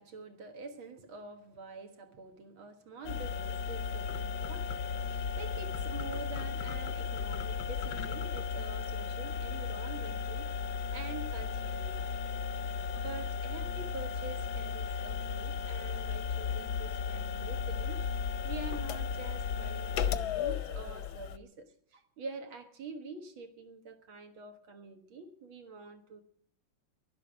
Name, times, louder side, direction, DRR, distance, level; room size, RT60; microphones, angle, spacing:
voice 1, 0.0-10.5 10.9-12.1 12.6-18.0 18.4-26.2, right 3 dB, 80° right, 2.3 m, -46 dB
sound 1, 3.0-21.4, left 6 dB, 65° left, 1.1 m, -35 dB
11.5 x 11.5 x 9.3 m
omnidirectional pair, 2.2 m